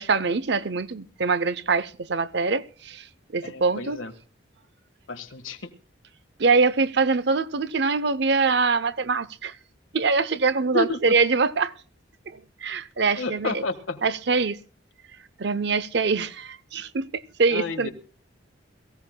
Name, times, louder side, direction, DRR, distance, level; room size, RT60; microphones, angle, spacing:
voice 1, 0.0-3.1 3.3-4.0 6.4-9.5 9.9-11.7 12.3-13.6 14.0-14.6 15.4-17.9, right 4 dB, 55° right, 0.6 m, -24 dB
voice 2, 3.4-4.1 5.1-5.7 10.7-11.1 13.1-14.0 17.5-17.9, left 2 dB, 80° left, 1.5 m, -30 dB
22.5 x 15.5 x 2.2 m
head